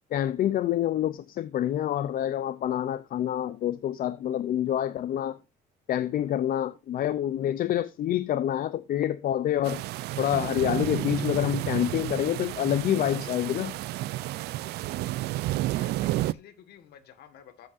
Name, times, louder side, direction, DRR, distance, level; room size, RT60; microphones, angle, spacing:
voice 1, 0.1-5.4 5.9-9.8 10.2-13.8, left 11 dB, 55° left, 0.6 m, -27 dB
sound 1, 9.6-16.3, right 16 dB, 80° right, 0.5 m, -31 dB
voice 2, 15.8-17.7, left 9 dB, 70° left, 1.9 m, -51 dB
13.5 x 7.7 x 2.7 m
cardioid pair, 110°, 17 cm